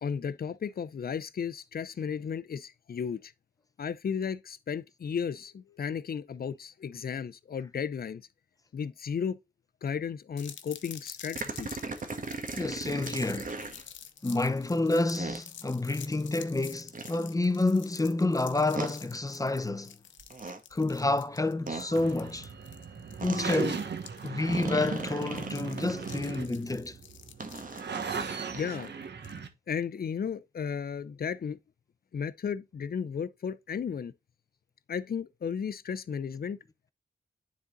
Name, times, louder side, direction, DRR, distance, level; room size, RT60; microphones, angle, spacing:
voice 1, 0.0-3.3 3.8-8.3 8.7-9.4 9.8-11.8 28.5-28.9 29.7-31.6 32.1-34.1 34.9-36.6, left 7 dB, 50° left, 0.6 m, -34 dB
sound 1, 10.4-29.4, left 9 dB, 90° left, 0.9 m, -49 dB
sound 2, 11.3-13.8 15.2-15.4 16.9-17.2 18.7-18.9 20.2-20.6 21.7-21.9 23.2-23.4 24.5-26.2 27.4-28.9, right 3 dB, 45° right, 1.4 m, -38 dB
voice 2, 12.5-13.5 14.2-20.0 20.7-22.5 23.2-23.8 24.2-27.0, left 2 dB, 20° left, 0.8 m, -29 dB
sound 3, 21.7-29.5, right 5 dB, 65° right, 1.4 m, -38 dB
10.0 x 4.1 x 3.9 m
cardioid pair, 75°, 19 cm